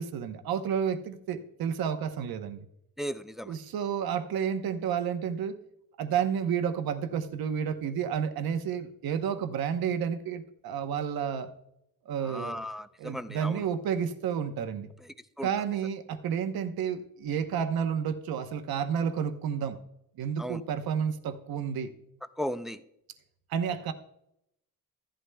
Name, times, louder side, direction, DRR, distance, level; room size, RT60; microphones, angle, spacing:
voice 1, 0.0-2.7 3.5-5.6 6.0-11.5 12.1-12.6 13.0-14.9 15.4-19.8 20.2-21.9 23.5-23.9, right 7 dB, 80° right, 8 dB, 0.9 m, -31 dB
voice 2, 3.0-3.5 12.2-13.6 15.4-15.5 20.4-20.6 22.4-22.8, equal, ahead, 12 dB, 0.4 m, -36 dB
15.0 x 11.5 x 2.2 m, 0.79 s
cardioid pair, 100°, 36 cm